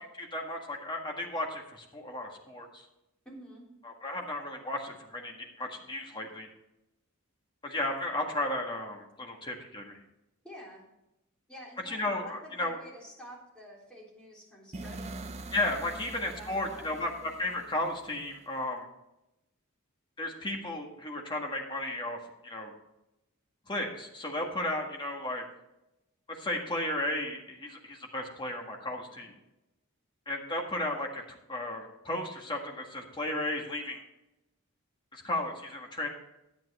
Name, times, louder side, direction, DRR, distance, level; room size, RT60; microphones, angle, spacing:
voice 1, 0.2-2.8 3.8-6.5 7.6-10.0 11.9-12.8 15.5-18.9 20.2-22.2 22.4-22.7 23.7-25.4 26.3-29.3 30.2-31.2 31.5-34.0 35.1-36.1, left 1 dB, 20° left, 1 dB, 1.7 m, -34 dB
voice 2, 3.3-3.7 10.4-10.8 11.5-15.4 15.7-17.1, equal, 5° left, -5 dB, 3.6 m, -49 dB
sound 1, 14.7-18.6, right 2 dB, 30° right, 0.6 m, -44 dB
10.5 x 9.1 x 4.2 m, 0.90 s
head